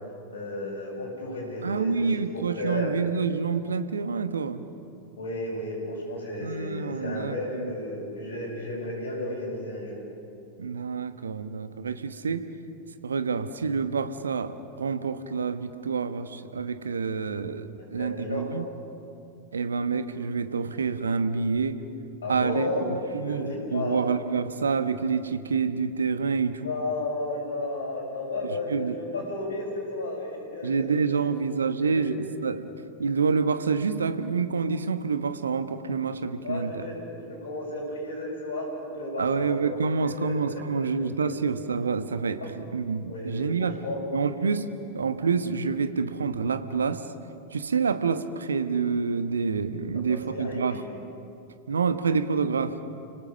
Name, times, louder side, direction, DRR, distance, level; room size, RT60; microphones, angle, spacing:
voice 1, 0.3-2.1 2.3-2.9 5.2-10.0 17.8-18.5 22.2-22.9 23.2-24.0 26.6-30.9 31.8-32.1 36.4-39.8 40.2-40.9 41.2-41.3 42.4-42.5 43.0-44.0 50.1-50.9, left 2 dB, 65° left, 0 dB, 7.1 m, -33 dB
voice 2, 1.6-4.6 6.4-7.7 10.6-12.4 13.0-18.7 19.5-21.8 22.3-26.6 28.4-28.9 30.6-32.2 32.4-32.7 33.0-36.9 39.2-42.4 42.7-43.8 44.1-44.7 44.9-47.0 47.5-50.7 51.7-52.7, right 5 dB, 70° right, 10 dB, 1.2 m, -27 dB
29.5 x 18.5 x 6.5 m, 2.7 s
figure-of-eight pair, 90°, 0 cm